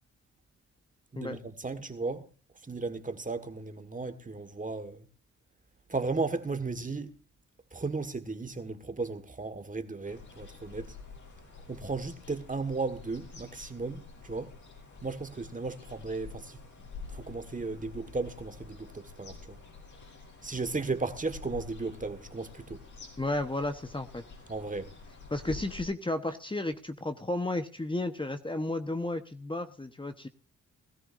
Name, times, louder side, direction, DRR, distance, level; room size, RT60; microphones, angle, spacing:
voice 1, 1.1-2.3 2.6-5.1 5.9-7.2 7.7-11.0 11.7-14.6 15.0-16.6 17.1-19.6 20.4-22.8 24.5-24.9, right 3 dB, 25° right, 1.7 m, -35 dB
sound 1, 10.0-25.8, left 4 dB, 80° left, 7.1 m, -48 dB
voice 2, 23.2-24.2 25.3-30.3, left 2 dB, 15° left, 1.2 m, -33 dB
20.0 x 13.5 x 2.6 m
cardioid pair, 65°, 30 cm